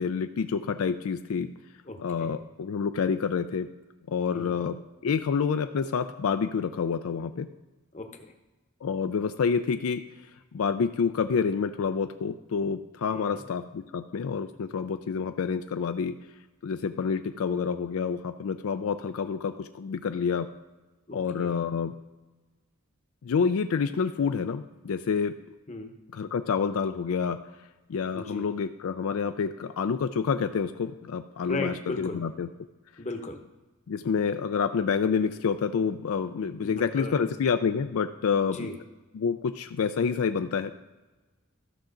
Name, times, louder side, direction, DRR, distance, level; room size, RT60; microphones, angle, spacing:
voice 1, 0.0-1.5 2.0-3.7 4.1-7.5 8.8-10.0 10.5-16.1 16.6-20.5 21.1-21.9 23.2-25.4 26.1-27.4 27.9-32.5 33.9-38.7 39.1-40.7, left 6 dB, 75° left, 8 dB, 0.4 m, -28 dB
voice 2, 1.9-2.4 4.3-4.6 7.9-8.3 13.1-13.4 21.1-21.5 25.7-26.0 28.1-28.5 31.4-32.2 33.0-33.4 36.6-37.3 38.5-38.7, left 2 dB, 30° left, 5 dB, 0.8 m, -37 dB
14.0 x 6.0 x 3.8 m, 1.2 s
head